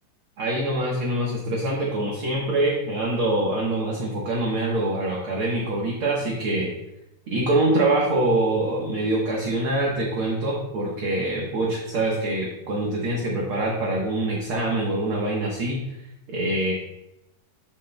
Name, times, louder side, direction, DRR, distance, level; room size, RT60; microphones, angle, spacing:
voice 1, 0.4-6.7 7.3-16.0 16.3-16.7, right 2 dB, 60° right, -3 dB, 1.5 m, -24 dB
13.0 x 6.1 x 2.2 m, 0.89 s
omnidirectional pair, 3.7 m